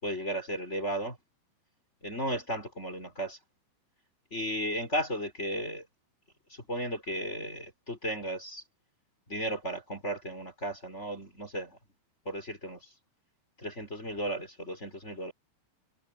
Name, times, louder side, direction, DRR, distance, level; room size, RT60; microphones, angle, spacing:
voice 1, 0.0-1.2 2.0-3.4 4.3-5.8 6.5-8.6 9.3-11.8 12.2-12.8 13.6-15.3, equal, 15° left, 4.5 m, -35 dB
omnidirectional pair, 5.4 m